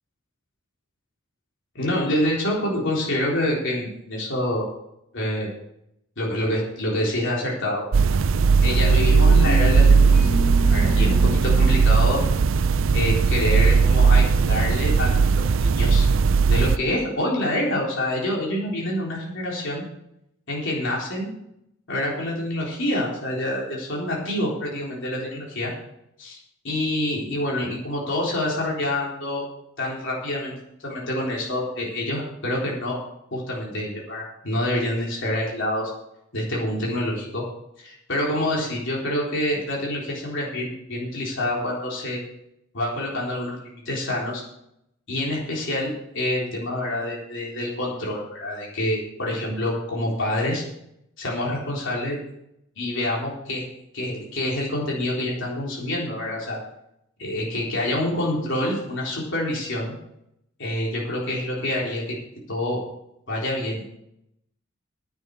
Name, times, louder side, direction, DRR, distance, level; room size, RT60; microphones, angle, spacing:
voice 1, 1.7-4.7 5.1-5.5 6.2-7.8 8.6-10.3 10.7-12.2 12.9-15.2 15.6-16.1 16.5-19.8 20.5-21.3 21.9-25.7 26.2-26.4 26.6-29.4 29.8-30.5 30.8-33.0 33.3-35.9 36.3-37.4 37.8-42.2 42.7-44.4 45.1-50.6 51.2-52.2 52.8-53.7 53.9-56.6 57.2-59.9 60.6-62.2 62.5-62.8 63.3-63.8, left 1 dB, 60° left, -3 dB, 3.8 m, -27 dB
sound 1, 7.9-16.8, right 5 dB, 65° right, 0.5 m, -18 dB
sound 2, 8.7-13.4, left 4 dB, ahead, 5.1 m, -32 dB
10.0 x 9.1 x 7.0 m, 0.79 s
head